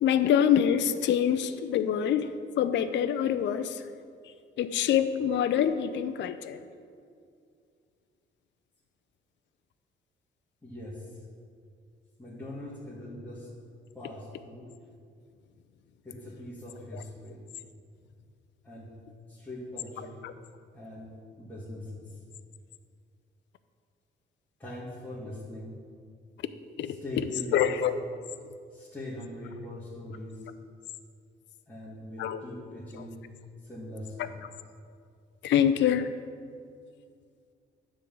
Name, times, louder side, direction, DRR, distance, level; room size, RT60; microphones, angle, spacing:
voice 1, 0.0-3.8 4.6-6.6 16.9-17.0 20.2-20.3 26.8-27.0 27.5-27.9 32.2-32.4 34.2-34.3 35.4-36.1, left 9 dB, 65° left, 11 dB, 0.5 m, -25 dB
voice 2, 10.6-11.2 12.2-13.5 13.9-14.7 16.0-17.4 18.6-19.0 19.3-20.2 20.7-22.2 24.6-25.9 26.8-27.7 28.7-30.5 31.7-33.3 33.6-34.3, left 1 dB, 10° left, -9 dB, 1.9 m, -41 dB
9.9 x 3.8 x 7.1 m, 2.3 s
cardioid pair, 90°, 20 cm